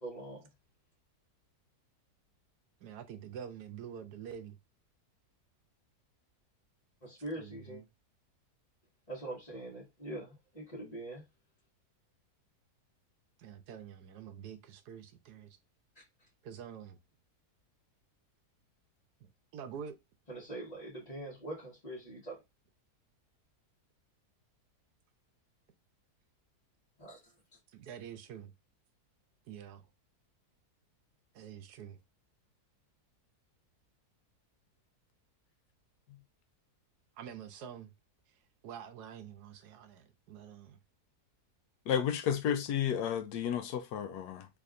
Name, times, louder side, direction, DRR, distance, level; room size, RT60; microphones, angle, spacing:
voice 1, 0.0-0.5 7.0-7.8 9.1-11.3 16.2-16.3 20.3-22.4 27.0-27.3, right 1 dB, 25° left, 1.5 m, -43 dB
voice 2, 2.8-4.6 7.3-7.9 13.4-15.6 16.4-17.0 19.5-19.9 27.7-28.5 29.5-29.8 31.3-32.0 37.2-37.9 38.6-40.8 42.4-42.5, right 8 dB, 80° right, 1.2 m, -46 dB
voice 3, 41.9-44.5, left 9 dB, 85° left, 1.2 m, -32 dB
3.4 x 3.4 x 2.5 m
omnidirectional pair, 1.7 m